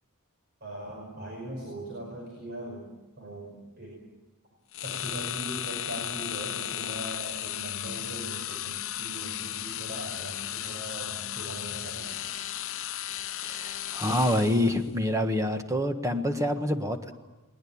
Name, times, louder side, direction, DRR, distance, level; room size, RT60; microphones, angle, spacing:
voice 1, 0.6-2.9 3.2-4.0 4.8-12.2, right 1 dB, 50° right, -1 dB, 5.5 m, -40 dB
sound 1, 4.7-14.8, left 12 dB, 65° left, 0.8 m, -35 dB
voice 2, 13.4-17.2, left 1 dB, 15° right, 6 dB, 1.6 m, -27 dB
21.0 x 20.0 x 8.8 m, 1.1 s
head